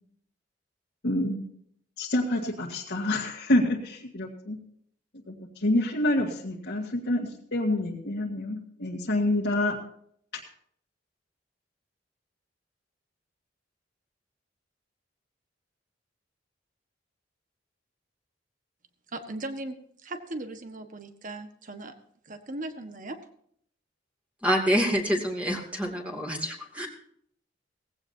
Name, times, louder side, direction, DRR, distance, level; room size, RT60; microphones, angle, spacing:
voice 1, 1.0-1.5 2.0-4.6 5.3-9.8 10.3-10.4, left 1 dB, 65° left, -4 dB, 1.8 m, -27 dB
voice 2, 19.1-19.7 20.0-21.9 22.3-23.2, right 2 dB, 45° right, 8 dB, 1.5 m, -38 dB
voice 3, 24.4-26.9, equal, 10° right, 0 dB, 2.6 m, -27 dB
18.5 x 16.0 x 2.8 m, 0.66 s
head